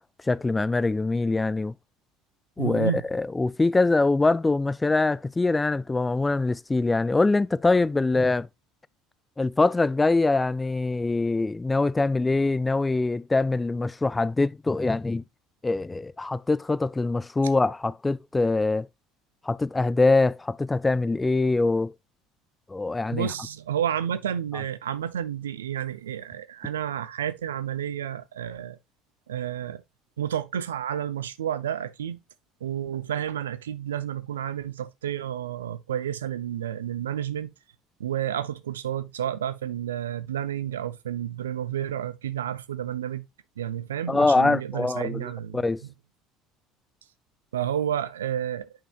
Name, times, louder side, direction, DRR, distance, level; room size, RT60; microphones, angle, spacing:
voice 1, 0.3-1.7 2.6-8.5 9.4-15.2 15.6-18.9 19.5-21.9 22.7-23.3 44.1-45.8, left 3 dB, 15° left, 0.3 m, -23 dB
voice 2, 2.6-3.0 23.1-28.8 29.3-29.8 30.2-32.2 32.6-37.5 38.0-43.2 43.6-45.6 47.5-48.7, right 10 dB, 80° right, 0.5 m, -30 dB
8.7 x 5.5 x 2.4 m
hypercardioid pair, 65°, 0 cm